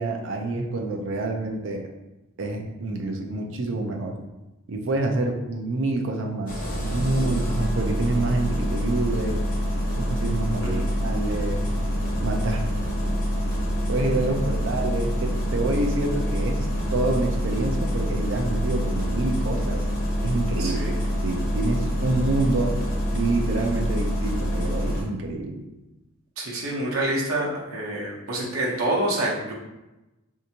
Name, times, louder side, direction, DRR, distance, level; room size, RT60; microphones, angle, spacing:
voice 1, 0.0-1.9 2.4-4.2 4.7-9.4 10.0-11.7 12.2-12.7 13.9-19.8 20.2-20.9 21.2-22.7 23.1-25.6, right 2 dB, 65° right, 2 dB, 0.5 m, -27 dB
Engine starting, 6.5-25.0, equal, 40° left, 1.0 m, -26 dB
voice 2, 20.6-20.9 26.4-29.5, right 1 dB, 90° right, -3 dB, 0.9 m, -27 dB
3.4 x 2.7 x 2.8 m, 1.0 s
head